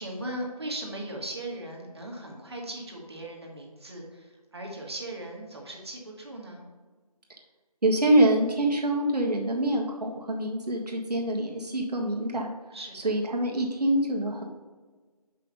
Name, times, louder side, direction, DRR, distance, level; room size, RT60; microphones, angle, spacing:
voice 1, 0.0-6.6 12.7-13.1, right 1 dB, 40° right, 0 dB, 1.5 m, -38 dB
voice 2, 7.8-12.5 13.0-14.5, right 1 dB, 85° right, 1 dB, 1.6 m, -25 dB
5.7 x 5.5 x 5.2 m, 1.4 s
figure-of-eight pair, 175°, 20 cm